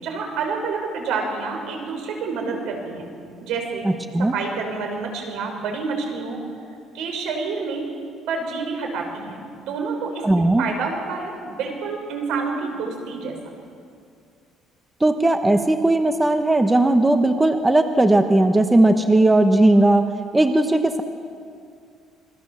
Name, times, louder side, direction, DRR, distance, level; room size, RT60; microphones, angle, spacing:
voice 1, 0.0-3.0 3.4-3.9 4.3-6.4 6.9-7.9 8.3-10.2 10.6-13.3, right 4 dB, 75° right, 3 dB, 5.8 m, -28 dB
voice 2, 3.8-4.3 10.2-10.6 15.0-21.0, right 2 dB, 10° right, 7 dB, 1.1 m, -17 dB
27.0 x 22.0 x 7.3 m, 2.3 s
cardioid pair, 145°, 0 cm